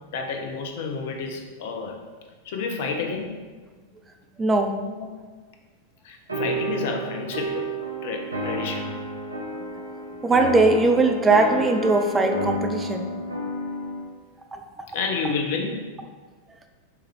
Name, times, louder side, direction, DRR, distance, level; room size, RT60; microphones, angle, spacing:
voice 1, 0.1-2.0 2.4-3.4 5.0-5.1 6.0-7.7 8.0-8.9 14.9-15.8, left 4 dB, 55° left, 3 dB, 0.6 m, -30 dB
voice 2, 4.4-4.7 9.6-9.7 10.2-13.1 14.5-14.9, right 3 dB, 15° right, 5 dB, 0.4 m, -20 dB
sound 1, 6.3-14.1, right 1 dB, 80° right, 0.6 m, -31 dB
4.4 x 3.2 x 3.6 m, 1.4 s
figure-of-eight pair, 90°, 0 cm